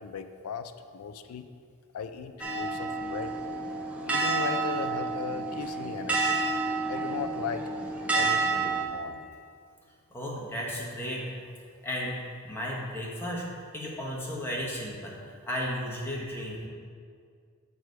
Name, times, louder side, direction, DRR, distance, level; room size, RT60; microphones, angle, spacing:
voice 1, 0.0-1.4 1.9-3.4 4.0-6.5 6.9-7.7 8.1-9.3, left 6 dB, 70° left, 8 dB, 0.4 m, -37 dB
sound 1, 2.4-8.8, right 3 dB, 5° right, 0.8 m, -29 dB
voice 2, 10.1-11.3 11.8-12.2 12.4-13.4 13.7-16.7, equal, 10° left, -4 dB, 1.2 m, -34 dB
7.8 x 4.9 x 4.7 m, 2.2 s
head